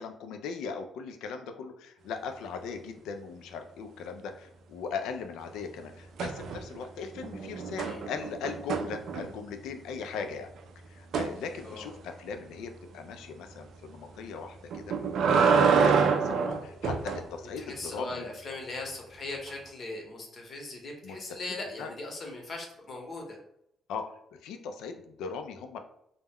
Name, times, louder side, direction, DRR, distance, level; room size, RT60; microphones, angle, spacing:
voice 1, 0.0-10.5 10.9-14.9 15.7-18.3 21.0-21.2 21.8-21.9 23.9-24.1 24.4-25.8, left 5 dB, 90° left, 6 dB, 0.3 m, -39 dB
sound 1, 6.2-6.8 7.2-9.5 11.1-11.3 14.7-17.2 19.5-19.6, right 5 dB, 70° right, 0.3 m, -26 dB
voice 2, 17.6-23.4, left 2 dB, 45° left, 0 dB, 0.8 m, -39 dB
2.2 x 2.0 x 3.4 m, 0.76 s
cardioid pair, 90°, 0 cm